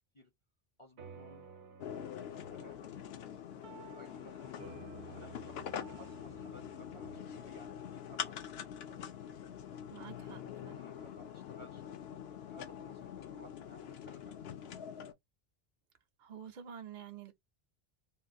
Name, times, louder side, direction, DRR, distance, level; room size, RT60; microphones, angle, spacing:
voice 1, 0.8-1.5 2.4-2.9 3.7-4.8 5.0-8.4 8.9-9.2 10.2-10.4 10.8-12.0 12.5-14.9, left 1 dB, 40° left, 0.5 m, -58 dB
sound 1, 1.0-9.7, right 6 dB, 80° right, 0.9 m, -56 dB
sound 2, 1.8-15.1, left 9 dB, 75° left, 0.8 m, -45 dB
voice 2, 9.9-10.8 16.2-17.3, right 8 dB, 55° right, 0.6 m, -49 dB
3.6 x 2.2 x 2.6 m
omnidirectional pair, 1.1 m